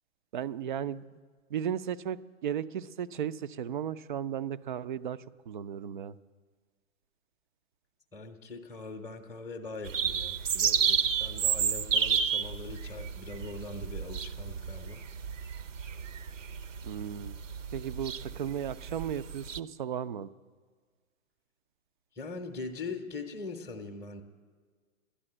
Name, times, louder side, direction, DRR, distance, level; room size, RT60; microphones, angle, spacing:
voice 1, 0.3-1.0 1.5-6.2 16.8-17.4 17.7-20.3, right 9 dB, 40° right, 15 dB, 0.4 m, -35 dB
voice 2, 8.1-15.1 22.1-24.2, left 3 dB, 5° left, 2 dB, 0.7 m, -42 dB
sound 1, 9.8-19.6, right 7 dB, 70° right, 0.8 m, -31 dB
12.5 x 10.0 x 7.7 m, 1.5 s
figure-of-eight pair, 120°, 40 cm